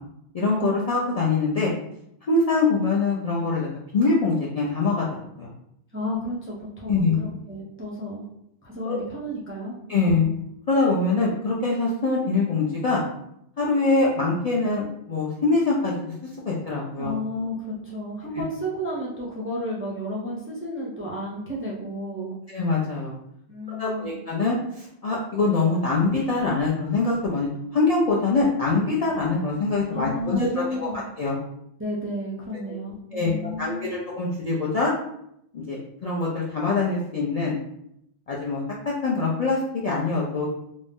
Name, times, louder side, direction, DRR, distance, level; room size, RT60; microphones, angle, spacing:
voice 1, 0.3-1.7 2.3-3.7 3.9-5.0 5.4-5.5 6.9-7.2 8.9-9.0 9.9-10.2 10.7-13.0 13.6-15.9 16.4-17.1 22.5-23.1 23.7-27.5 27.7-30.9 31.2-31.4 32.7-32.8 33.1-34.9 35.5-37.6 38.3-38.6 39.0-40.5, left 3 dB, 55° left, -5 dB, 0.4 m, -23 dB
voice 2, 5.9-8.2 8.6-10.3 17.0-22.3 23.5-24.1 29.9-31.0 31.8-33.9, equal, 20° right, -5 dB, 0.3 m, -32 dB
2.5 x 2.1 x 3.4 m, 0.76 s
omnidirectional pair, 1.1 m